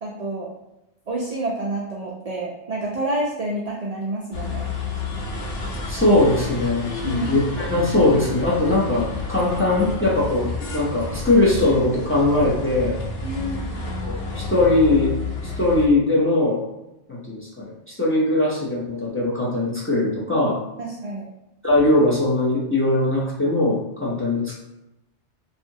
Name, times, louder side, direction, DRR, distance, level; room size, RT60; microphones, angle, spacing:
voice 1, 0.0-0.5 1.1-4.6 7.0-7.3 13.2-13.8 20.8-21.2, right 2 dB, 65° right, -3 dB, 0.3 m, -28 dB
sound 1, 4.3-15.9, left 3 dB, 85° left, 0.9 m, -30 dB
voice 2, 5.9-13.0 14.0-15.1 15.6-16.6 17.1-20.6 21.6-24.6, left 2 dB, 20° left, -7 dB, 0.3 m, -20 dB
2.7 x 2.4 x 2.6 m, 0.92 s
omnidirectional pair, 1.2 m